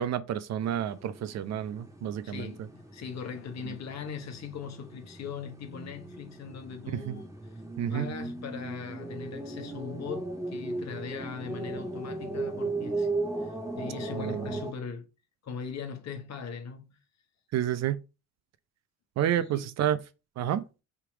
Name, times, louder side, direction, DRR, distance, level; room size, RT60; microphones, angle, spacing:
voice 1, 0.0-2.5 7.1-7.2 7.8-8.1 14.2-14.5 17.5-18.0 19.2-20.0 20.4-20.6, right 10 dB, 50° right, 0.5 m, -29 dB
sound 1, 0.6-14.7, right 2 dB, 10° right, 1.5 m, -37 dB
voice 2, 2.0-7.3 7.9-13.1 13.4-15.1 15.4-17.0 19.4-19.7, left 6 dB, 50° left, 1.1 m, -40 dB
3.5 x 2.9 x 4.7 m
supercardioid pair, 75°, 35 cm